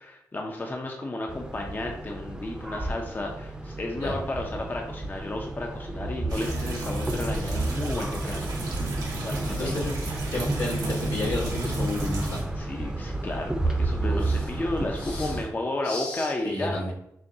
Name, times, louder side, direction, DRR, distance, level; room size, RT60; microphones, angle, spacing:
voice 1, 0.0-8.8 9.2-9.8 12.6-16.8, left 2 dB, 30° left, 1 dB, 0.6 m, -33 dB
sound 1, 1.3-15.4, right 2 dB, 15° right, 0.6 m, -32 dB
sound 2, 6.3-12.4, right 2 dB, 85° right, 1.0 m, -32 dB
voice 2, 9.5-9.9 10.3-12.4 14.0-14.5 15.0-15.4 15.8-16.9, left 2 dB, 85° left, -5 dB, 1.5 m, -32 dB
6.3 x 2.2 x 2.7 m, 0.75 s
cardioid pair, 75°, 6 cm